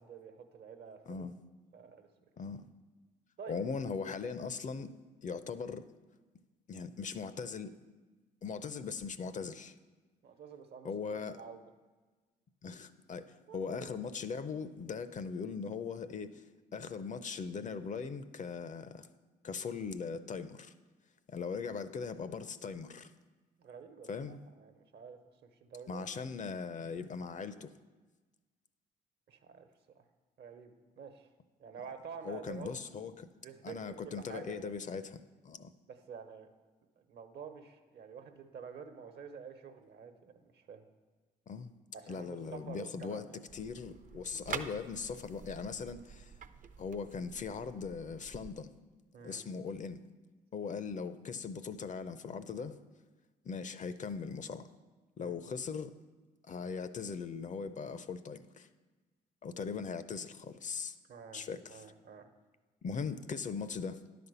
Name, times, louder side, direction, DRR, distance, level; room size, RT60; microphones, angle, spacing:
voice 1, 0.0-1.2 1.7-2.3 3.4-3.6 5.4-5.6 10.2-11.6 13.5-13.9 23.6-24.1 24.6-25.2 25.6-26.1 29.3-29.7 29.9-30.1 30.4-31.3 31.6-32.7 33.4-34.7 35.9-36.5 37.0-40.9 41.9-43.4 49.1-49.4 55.2-55.4 61.1-61.4 61.7-62.3, right 6 dB, 60° right, 1.1 m, -49 dB
voice 2, 3.5-4.9 5.2-5.9 6.7-7.8 8.4-9.7 10.8-11.4 12.6-16.5 16.7-19.1 19.4-20.7 21.3-23.1 24.1-24.4 25.9-27.7 32.2-33.3 33.6-35.7 41.5-41.7 42.1-43.3 43.5-46.3 46.8-48.7 49.2-50.0 50.5-52.8 53.4-54.7 55.2-56.0 56.5-58.7 59.4-61.0 61.3-61.8 62.8-64.0, left 5 dB, 40° left, 0.6 m, -40 dB
sound 1, 43.5-48.5, right 6 dB, 45° right, 0.6 m, -47 dB
10.5 x 4.3 x 6.8 m
hypercardioid pair, 55°, 19 cm